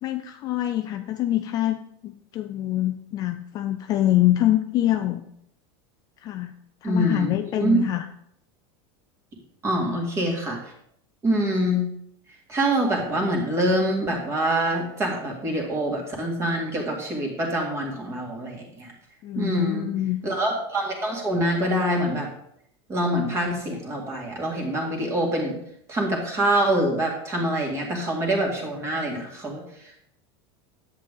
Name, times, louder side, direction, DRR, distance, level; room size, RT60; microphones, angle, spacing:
voice 1, 0.0-5.2 6.2-6.5 6.8-8.1 9.8-10.0 19.2-20.2, left 13 dB, 25° left, 7 dB, 0.4 m, -25 dB
voice 2, 6.8-7.3 7.6-7.8 9.6-10.6 11.2-11.9 12.5-18.9 19.4-19.9 20.2-22.3 22.9-25.6 25.9-29.6, right 1 dB, 20° right, 0 dB, 2.1 m, -25 dB
10.5 x 8.3 x 3.7 m, 0.73 s
supercardioid pair, 170°, 14 cm